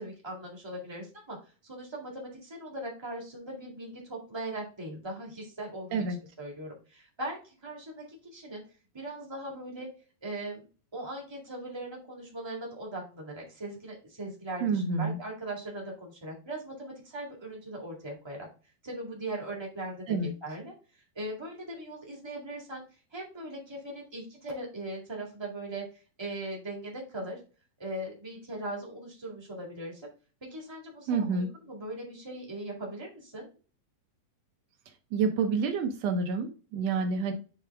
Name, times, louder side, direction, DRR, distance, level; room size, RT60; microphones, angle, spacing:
voice 1, 0.0-1.4 1.6-6.0 6.4-8.6 8.9-9.9 10.2-18.5 18.8-20.7 21.1-22.8 23.1-25.8 26.2-27.4 27.8-30.1 30.4-33.5, right 1 dB, 25° right, -2 dB, 0.5 m, -39 dB
voice 2, 14.6-15.2 20.1-20.3 31.1-31.5 35.1-37.3, right 4 dB, 80° right, 5 dB, 1.5 m, -28 dB
8.8 x 3.4 x 3.4 m, 0.35 s
omnidirectional pair, 4.1 m